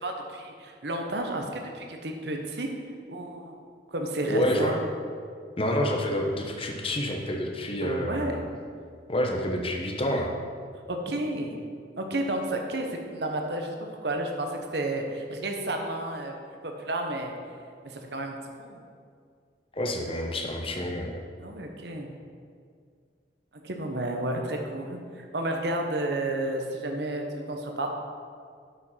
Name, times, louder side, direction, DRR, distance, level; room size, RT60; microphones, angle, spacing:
voice 1, 0.0-1.5 1.7-2.7 3.1-3.6 3.9-4.8 7.8-8.3 10.9-11.6 12.0-16.3 16.6-17.3 17.8-18.8 21.4-22.1 23.6-27.9, right 1 dB, 65° right, 3 dB, 1.0 m, -31 dB
voice 2, 4.3-4.8 5.6-8.5 9.1-10.3 19.7-21.1, equal, 30° left, 1 dB, 0.9 m, -28 dB
8.1 x 5.2 x 5.7 m, 2.1 s
head